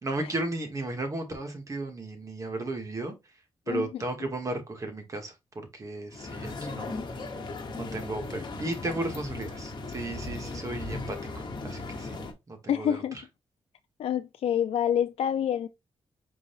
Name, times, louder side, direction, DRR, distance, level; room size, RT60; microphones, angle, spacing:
voice 1, 0.0-3.1 3.7-7.0 7.7-12.2 12.5-13.0, right 2 dB, 35° right, 1.6 m, -34 dB
sound 1, 6.1-12.3, left 3 dB, 45° left, 1.2 m, -37 dB
voice 2, 12.7-13.2 14.0-15.7, left 9 dB, 85° left, 0.4 m, -27 dB
4.8 x 3.9 x 2.6 m
wide cardioid pair, 130°, 10 cm